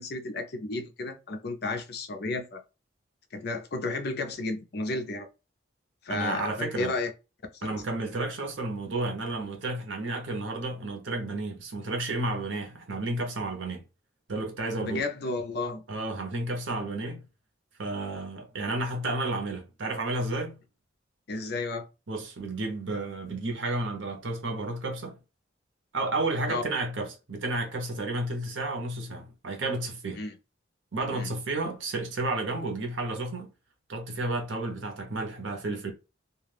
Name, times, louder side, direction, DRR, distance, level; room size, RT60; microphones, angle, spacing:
voice 1, 0.0-2.6 3.3-5.3 6.0-7.1 7.6-7.7 14.8-15.8 21.3-21.9 26.5-26.6 30.2-30.3 31.1-31.3, left 3 dB, 55° left, 0.5 m, -32 dB
voice 2, 6.1-6.9 7.6-13.8 14.3-15.0 15.9-17.2 17.8-20.6 22.1-25.2 25.9-30.2 30.9-33.5 33.9-35.9, right 2 dB, 75° right, 0.8 m, -32 dB
2.4 x 2.3 x 3.3 m
head